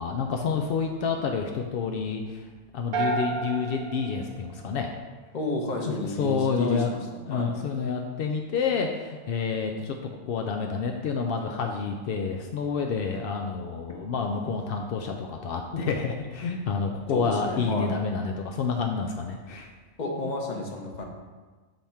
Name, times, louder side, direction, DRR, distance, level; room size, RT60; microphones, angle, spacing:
voice 1, 0.0-2.4 2.7-4.9 5.8-6.9 7.3-19.7, left 5 dB, 75° left, 3 dB, 0.5 m, -29 dB
sound 1, 2.9-5.2, right 4 dB, 75° right, 1.1 m, -31 dB
voice 2, 5.3-7.0 7.3-7.5 15.7-15.8 17.1-17.9 20.0-21.1, left 2 dB, 35° left, 1 dB, 0.9 m, -31 dB
7.8 x 3.5 x 4.3 m, 1.3 s
omnidirectional pair, 1.5 m